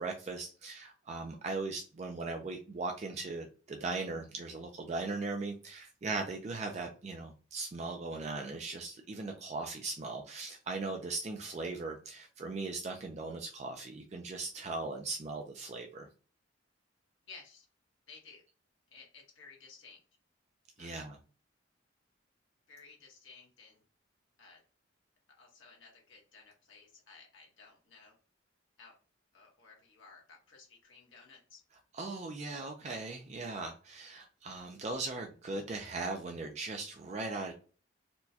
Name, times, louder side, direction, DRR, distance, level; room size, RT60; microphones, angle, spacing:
voice 1, 0.0-16.1 20.8-21.2 31.9-37.5, right 3 dB, 35° right, 3 dB, 0.4 m, -39 dB
voice 2, 17.2-17.7 18.1-18.4 18.9-20.0 20.8-20.9 22.7-23.8 24.4-24.6 25.4-28.2 28.8-28.9 29.3-31.6, left 4 dB, 75° left, 0 dB, 1.3 m, -55 dB
4.3 x 2.1 x 2.7 m, 0.38 s
head